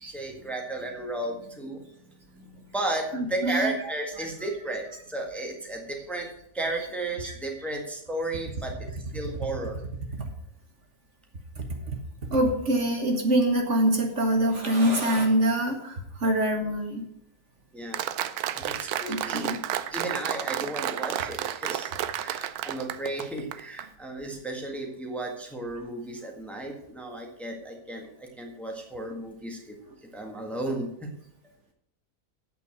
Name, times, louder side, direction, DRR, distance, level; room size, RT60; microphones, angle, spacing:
voice 1, 0.0-1.8 2.3-6.3 6.5-8.7 9.1-9.8 17.7-18.0 18.5-29.7 30.0-31.1, right 2 dB, ahead, 1 dB, 1.6 m, -34 dB
voice 2, 3.1-3.7 12.3-17.1 19.1-19.6, right 1 dB, 55° right, 3 dB, 1.7 m, -24 dB
Applause, 17.9-23.9, right 11 dB, 90° right, 1.1 m, -31 dB
8.5 x 6.7 x 8.0 m, 0.73 s
omnidirectional pair, 1.6 m